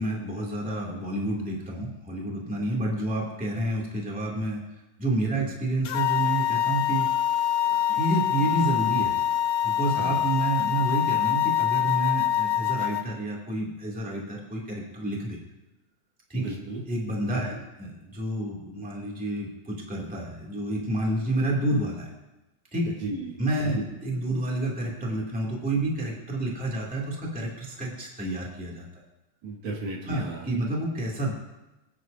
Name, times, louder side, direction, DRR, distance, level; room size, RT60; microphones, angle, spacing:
voice 1, 0.0-4.7 5.0-7.1 7.9-9.2 9.6-15.4 16.3-16.6 16.9-22.1 22.7-23.0 23.4-28.9 30.1-31.3, right 1 dB, 5° right, -3 dB, 2.0 m, -29 dB
sound 1, 5.8-13.0, left 11 dB, 75° left, 1.7 m, -25 dB
voice 2, 16.3-16.8 17.4-17.6 23.0-23.4 23.7-23.8 29.4-30.4, right 3 dB, 75° right, -1 dB, 3.3 m, -34 dB
25.5 x 9.7 x 2.7 m, 1.0 s
omnidirectional pair, 3.5 m